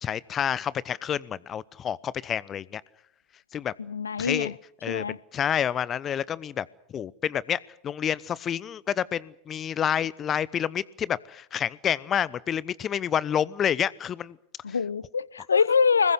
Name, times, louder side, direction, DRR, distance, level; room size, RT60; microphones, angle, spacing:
voice 1, 0.0-2.8 3.5-3.7 4.2-4.5 4.8-6.7 6.9-14.4, left 9 dB, 30° left, 0.9 m, -29 dB
voice 2, 3.8-4.5 4.9-5.2 14.6-16.1, left 5 dB, 80° left, 0.9 m, -24 dB
25.0 x 21.5 x 8.0 m
figure-of-eight pair, 85°, 0 cm